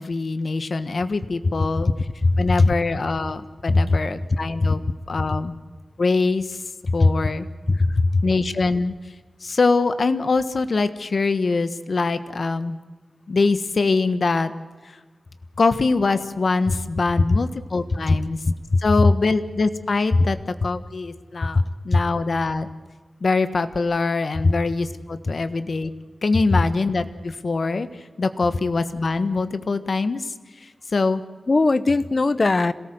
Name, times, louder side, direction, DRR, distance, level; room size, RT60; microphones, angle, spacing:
voice 1, 0.0-1.9 2.4-4.8 5.1-5.6 6.0-6.6 6.9-7.5 8.2-8.9 9.4-12.8 13.3-14.5 14.8-15.0 15.6-18.4 18.8-22.7 23.2-25.9 26.2-30.3 30.6-31.2, left 3 dB, 60° left, 10 dB, 1.4 m, -23 dB
voice 2, 2.2-2.7 3.7-4.0 7.0-7.1 7.7-8.2 18.1-18.2 18.5-18.6 21.9-22.0 31.5-32.7, left 3 dB, 45° left, 14 dB, 1.0 m, -18 dB
26.5 x 18.0 x 8.0 m, 1.4 s
wide cardioid pair, 105°, 0 cm